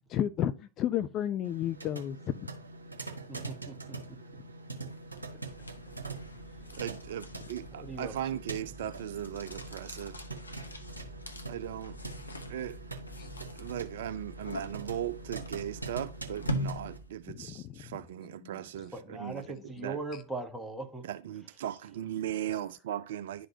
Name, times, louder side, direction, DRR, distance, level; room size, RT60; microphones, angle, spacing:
voice 1, 0.1-2.5 13.2-13.3 17.3-18.0 18.2-18.6, left 11 dB, 35° left, 0.3 m, -33 dB
sound 1, 1.4-17.0, right 3 dB, 80° right, 1.0 m, -44 dB
voice 2, 3.3-4.0 4.3-4.4 7.7-8.1 18.9-21.1, right 3 dB, 5° right, 1.2 m, -40 dB
sound 2, 4.9-17.3, equal, 80° left, 0.7 m, -43 dB
voice 3, 6.8-10.2 11.5-12.0 12.5-12.8 13.6-19.4 19.8-20.0 21.0-23.5, right 11 dB, 55° right, 0.4 m, -38 dB
11.0 x 3.9 x 2.7 m
figure-of-eight pair, 90°, 0 cm